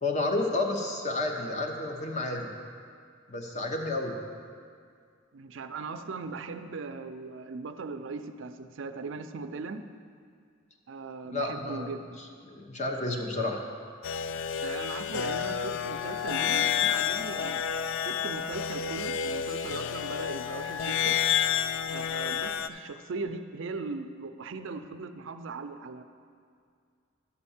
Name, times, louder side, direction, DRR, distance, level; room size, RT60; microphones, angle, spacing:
voice 1, 0.0-2.5 3.3-4.2 11.2-12.0 12.4-13.6, left 2 dB, 35° left, 2 dB, 1.0 m, -31 dB
voice 2, 5.3-9.8 10.9-12.2 14.6-17.6 18.0-21.2 21.9-26.0, right 4 dB, 70° right, 8 dB, 0.5 m, -39 dB
sound 1, 14.0-22.7, left 8 dB, 65° left, 0.3 m, -30 dB
11.0 x 4.3 x 7.2 m, 2.2 s
head